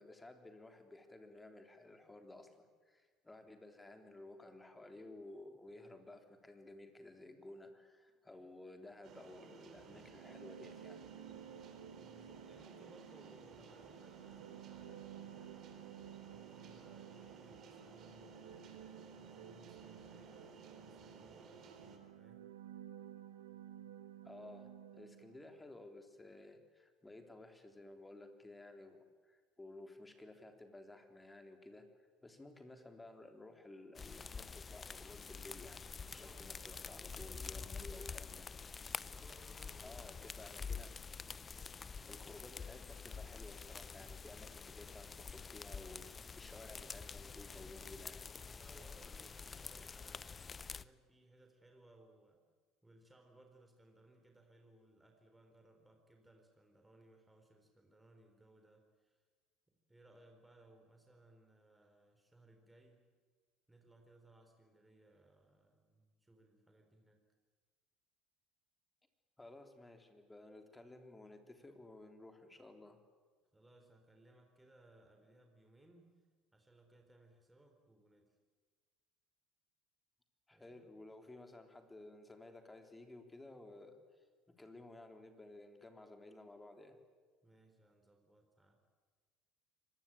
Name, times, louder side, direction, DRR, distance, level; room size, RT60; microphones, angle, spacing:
voice 1, 0.0-11.1 24.2-31.9 32.2-36.6 36.9-38.5 39.8-41.0 42.1-48.2 69.4-73.0 80.5-87.0, left 2 dB, 15° left, 6 dB, 3.5 m, -55 dB
sound 1, 9.0-22.0, right 5 dB, 50° right, 4.3 m, -57 dB
sound 2, 9.9-25.6, right 9 dB, 80° right, 1.5 m, -54 dB
voice 2, 11.9-15.7 16.3-22.5 36.1-37.8 39.1-40.3 44.0-44.2 48.6-52.5 52.8-59.2 59.7-63.1 63.7-67.2 73.5-76.3 76.5-78.4 80.5-81.0 87.4-88.8, right 1 dB, 10° right, 4 dB, 3.9 m, -65 dB
sound 3, 33.9-50.8, left 5 dB, 30° left, 0.7 m, -47 dB
25.0 x 20.0 x 8.9 m, 1.5 s
hypercardioid pair, 65°, 0 cm